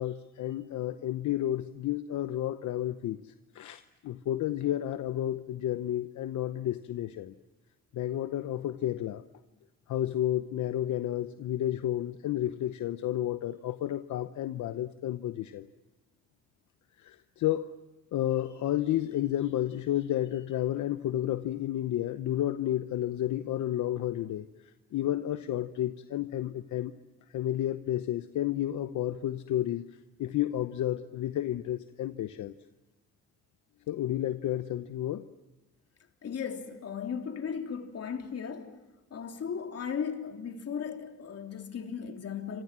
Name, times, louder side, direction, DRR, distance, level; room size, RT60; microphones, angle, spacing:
voice 1, 0.0-7.3 7.9-9.2 9.9-15.7 17.0-17.7 18.1-24.5 24.9-27.0 27.3-29.9 30.2-32.5 33.9-35.2, left 12 dB, 75° left, 1.0 m, -31 dB
voice 2, 36.2-38.7 39.1-42.6, left 7 dB, 55° left, 3.4 m, -36 dB
28.0 x 26.5 x 7.5 m
cardioid pair, 90°, 30 cm